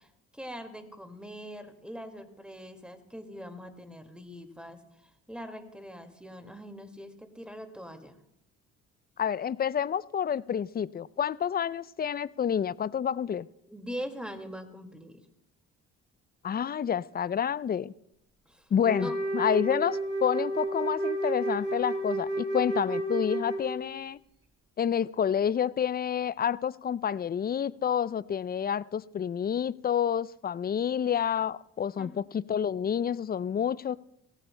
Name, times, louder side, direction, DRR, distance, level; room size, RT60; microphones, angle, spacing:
voice 1, 0.0-8.2 13.7-15.3 18.5-19.2 32.0-32.2, equal, 5° right, 6 dB, 2.1 m, -42 dB
voice 2, 9.2-13.5 16.4-17.9 18.7-24.2 24.8-34.0, left 8 dB, 25° left, 20 dB, 0.4 m, -29 dB
Wind instrument woodwind instrument, 18.8-24.0, right 1 dB, 35° right, 3.5 m, -31 dB
26.0 x 17.0 x 2.2 m, 0.78 s
hypercardioid pair, 50°, 35 cm